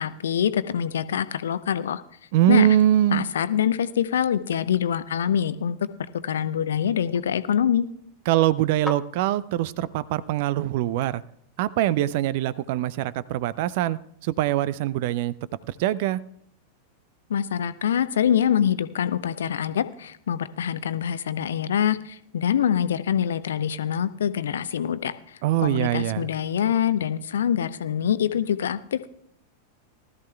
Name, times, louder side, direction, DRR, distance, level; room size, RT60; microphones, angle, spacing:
voice 1, 0.0-2.0 2.5-2.7 3.1-7.9 17.3-29.1, left 9 dB, 65° left, 14 dB, 0.6 m, -25 dB
voice 2, 2.3-3.2 8.3-11.2 11.6-15.3 15.8-16.2 25.4-26.3, right 13 dB, 50° right, 20 dB, 0.4 m, -23 dB
sound 1, 6.8-11.6, left 1 dB, ahead, 0.6 m, -45 dB
19.0 x 13.0 x 2.3 m, 0.69 s
figure-of-eight pair, 90°, 0 cm